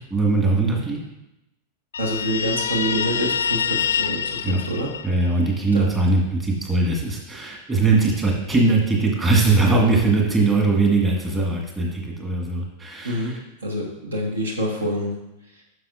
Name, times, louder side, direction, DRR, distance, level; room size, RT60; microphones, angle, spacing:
voice 1, 0.1-1.0 4.4-4.6 5.0-13.4, right 3 dB, 15° right, -1 dB, 1.7 m, -20 dB
Guitar, 1.9-5.5, left 7 dB, 70° left, 0.3 m, -26 dB
voice 2, 2.0-4.9 5.7-5.9 13.0-13.3 13.6-15.1, equal, 70° right, 0 dB, 1.1 m, -26 dB
9.4 x 6.1 x 2.5 m, 0.90 s
figure-of-eight pair, 90°, 0 cm